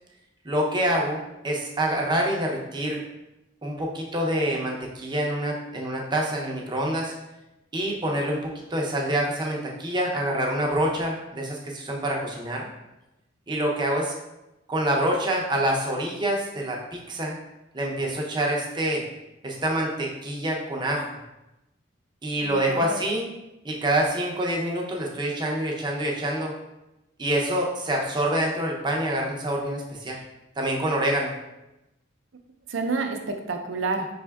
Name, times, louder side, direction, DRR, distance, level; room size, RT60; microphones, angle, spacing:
voice 1, 0.4-3.0 3.6-7.1 7.7-12.7 13.5-14.1 14.7-17.4 17.7-19.0 19.4-21.1 22.2-23.3 23.6-26.5 27.2-30.2 30.6-31.3, right 1 dB, 25° right, -1 dB, 0.6 m, -26 dB
voice 2, 22.4-23.0 32.7-34.1, right 3 dB, 80° right, 5 dB, 0.5 m, -29 dB
5.3 x 3.4 x 2.3 m, 0.94 s
head